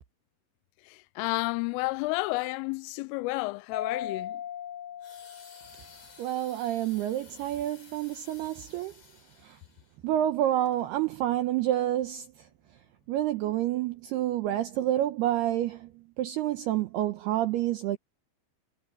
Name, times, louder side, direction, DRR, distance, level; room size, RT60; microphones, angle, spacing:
voice 1, 1.2-4.4, left 23 dB, 85° left, 3.2 m, -31 dB
Mallet percussion, 3.7-6.2, left 10 dB, 70° left, 7.8 m, -38 dB
sound 1, 5.0-10.0 10.6-10.8, left 4 dB, 40° left, 6.3 m, -54 dB
voice 2, 6.2-8.9 10.0-12.2 13.1-15.9 16.2-18.0, right 12 dB, 80° right, 2.4 m, -28 dB
omnidirectional pair, 5.7 m